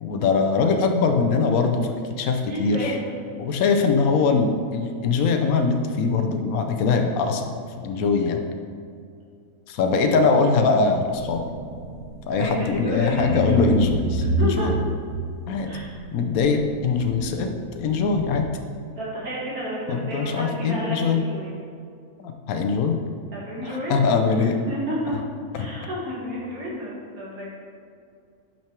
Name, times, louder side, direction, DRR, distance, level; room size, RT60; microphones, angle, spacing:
voice 1, 0.0-3.0 3.4-7.5 7.8-8.4 9.7-11.4 12.3-14.8 15.5-15.8 16.1-18.5 19.9-21.2 22.2-23.0 23.6-24.6 25.6-25.7, left 4 dB, 75° left, 5 dB, 1.1 m, -22 dB
voice 2, 2.5-3.0 12.4-13.7 14.4-14.7 15.7-15.9 19.0-21.5 23.3-24.0 24.7-25.1 25.5-27.5, equal, 80° right, -6 dB, 2.5 m, -31 dB
sound 1, 11.1-12.8 13.2-18.4, right 1 dB, 65° right, 1.3 m, -29 dB
6.0 x 5.8 x 4.5 m, 2.3 s
omnidirectional pair, 1.5 m